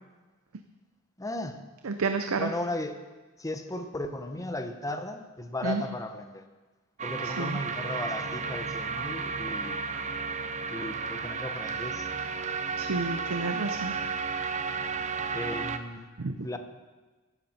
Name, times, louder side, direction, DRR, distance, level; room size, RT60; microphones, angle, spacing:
voice 1, 1.2-1.6 2.4-3.1 3.4-6.4 7.0-9.8 10.7-12.1 15.3-16.1 16.4-16.6, left 1 dB, 15° left, 7 dB, 0.9 m, -36 dB
voice 2, 1.8-2.5 5.6-5.8 7.2-7.6 12.8-13.9 16.2-16.4, right 4 dB, 75° right, 7 dB, 0.7 m, -30 dB
sound 1, 7.0-15.8, right 5 dB, 35° right, 0.7 m, -33 dB
15.0 x 12.0 x 4.4 m, 1.3 s
head